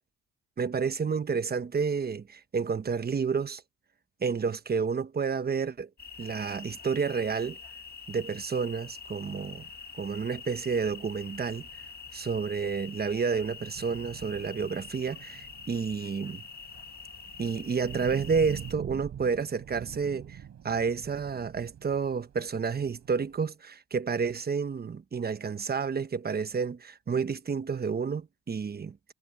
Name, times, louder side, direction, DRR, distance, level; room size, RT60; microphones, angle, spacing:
voice 1, 0.6-3.6 4.2-5.9 6.2-7.6 8.1-9.7 10.0-11.7 12.1-16.4 17.4-29.0, right 5 dB, 30° right, 1.1 m, -30 dB
sound 1, 6.0-18.7, left 6 dB, 30° left, 1.7 m, -46 dB
sound 2, 7.9-8.9 9.3-9.4 9.7-23.4, right 9 dB, 60° right, 6.2 m, -46 dB
cardioid pair, 90°, 30 cm